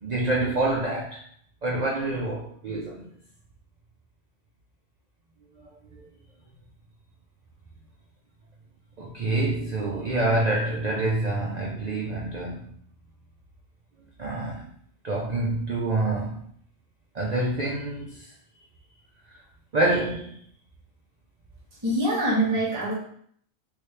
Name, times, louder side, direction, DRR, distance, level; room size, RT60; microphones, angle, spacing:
voice 1, 0.0-1.2 1.6-3.1 6.0-6.1 9.0-12.7 14.2-14.7 15.0-16.4 17.1-18.3 19.7-20.4, right 2 dB, 85° right, -2 dB, 0.3 m, -27 dB
voice 2, 21.8-22.9, right 1 dB, 20° right, -6 dB, 0.9 m, -24 dB
3.2 x 2.6 x 3.2 m, 0.62 s
omnidirectional pair, 1.4 m